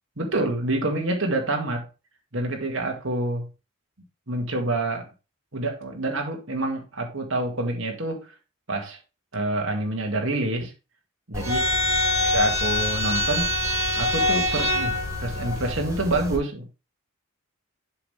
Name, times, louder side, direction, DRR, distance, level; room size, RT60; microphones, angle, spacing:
voice 1, 0.2-1.9 2.3-3.5 4.3-5.1 5.5-8.3 8.7-9.0 9.3-10.7 11.3-11.7 12.3-13.5 14.0-14.9 15.2-16.6, right 2 dB, 60° right, 2 dB, 2.2 m, -27 dB
sound 1, 11.3-16.4, left 1 dB, 15° right, 4.5 m, -24 dB
7.7 x 6.3 x 3.4 m, 0.29 s
head